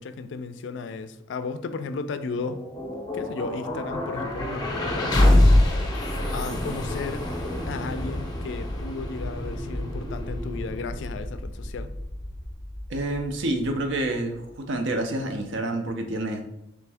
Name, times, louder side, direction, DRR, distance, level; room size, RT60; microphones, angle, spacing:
voice 1, 0.0-2.6 3.1-5.5 6.3-7.2 7.7-11.9, left 4 dB, 65° left, 10 dB, 0.3 m, -34 dB
sound 1, 2.2-14.2, left 1 dB, 20° left, 0.5 m, -26 dB
voice 2, 6.5-6.8 12.9-16.4, right 1 dB, 70° right, 5 dB, 0.5 m, -28 dB
3.4 x 3.1 x 3.4 m, 0.85 s
head